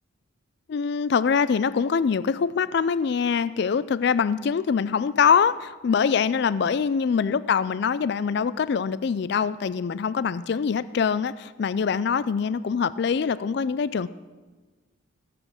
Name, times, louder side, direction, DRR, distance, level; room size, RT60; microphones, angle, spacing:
voice 1, 0.7-14.1, left 6 dB, 55° left, 17 dB, 0.3 m, -24 dB
18.0 x 8.7 x 6.3 m, 1.3 s
head